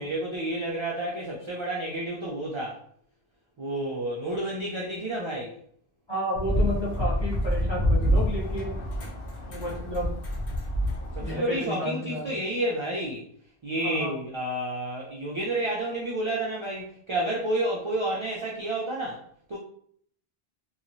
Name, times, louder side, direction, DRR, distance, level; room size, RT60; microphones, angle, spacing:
voice 1, 0.0-2.8 3.6-5.5 11.2-13.2 13.6-19.2 19.5-19.6, right 1 dB, 45° right, -4 dB, 0.4 m, -30 dB
voice 2, 6.1-8.8 9.5-10.2 11.2-12.4 13.8-14.1, left 1 dB, 25° left, -7 dB, 1.1 m, -32 dB
sound 1, 6.3-11.4, equal, 65° left, 0.8 m, -27 dB
2.9 x 2.3 x 2.6 m, 0.63 s
omnidirectional pair, 1.1 m